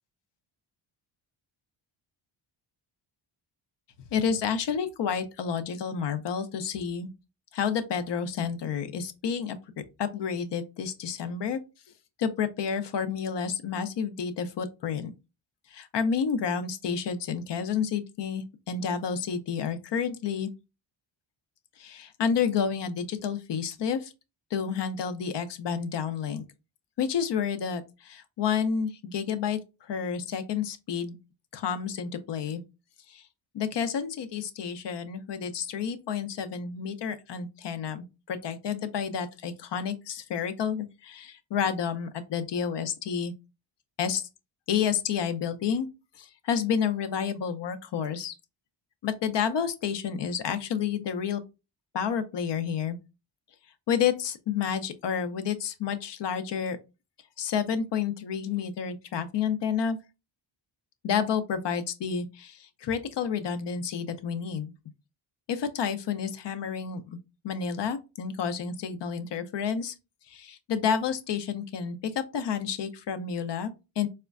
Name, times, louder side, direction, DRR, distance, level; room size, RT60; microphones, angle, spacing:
voice 1, 4.1-7.1 7.5-9.6 10.0-11.6 12.2-15.1 15.7-20.5 21.8-24.1 24.5-26.4 27.0-29.6 29.9-31.2 31.5-32.6 33.1-33.2 33.5-43.3 44.0-44.2 44.7-45.9 46.2-48.3 49.0-51.4 51.9-53.0 53.9-56.8 57.4-60.0 61.0-64.7 65.5-67.0 67.4-69.9 70.3-74.1, left 7 dB, 60° left, 0.6 m, -30 dB
4.2 x 2.2 x 2.4 m
cardioid pair, 100°, 49 cm